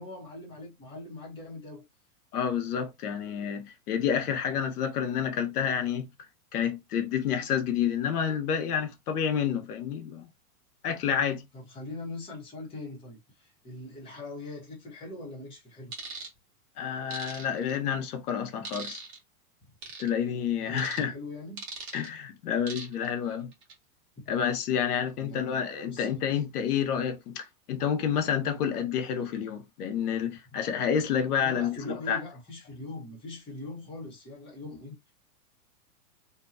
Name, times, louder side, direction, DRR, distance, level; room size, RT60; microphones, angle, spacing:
voice 1, 0.0-1.8 11.5-15.9 19.6-19.7 20.6-21.6 24.2-24.3 25.2-25.6 25.9-26.1 31.4-35.1, left 2 dB, 10° left, 0.9 m, -41 dB
voice 2, 2.3-6.1 6.5-10.3 10.8-11.4 16.8-19.0 20.0-21.1 21.9-23.5 24.3-27.4 27.7-32.2, left 8 dB, 85° left, 0.8 m, -29 dB
sound 1, 15.9-16.3 17.1-17.7 18.6-19.2 19.8-20.1 20.8-21.0 21.6-22.1 22.7-23.1 23.5-23.7, right 4 dB, 45° right, 1.0 m, -40 dB
2.7 x 2.2 x 2.4 m
supercardioid pair, 150°, 44 cm